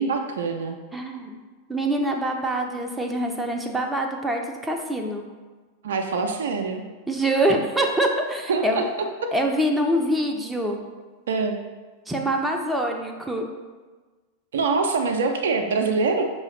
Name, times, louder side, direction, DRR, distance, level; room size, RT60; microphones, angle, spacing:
voice 1, 0.0-0.8 5.8-6.8 8.5-8.9 11.3-11.6 14.5-16.2, right 4 dB, 60° right, 4 dB, 0.4 m, -24 dB
voice 2, 0.9-1.4 1.7-5.2 7.1-8.8 9.3-10.8 12.1-13.5, right 1 dB, 5° right, 2 dB, 0.5 m, -25 dB
5.4 x 2.8 x 3.1 m, 1.3 s
figure-of-eight pair, 90°, 0 cm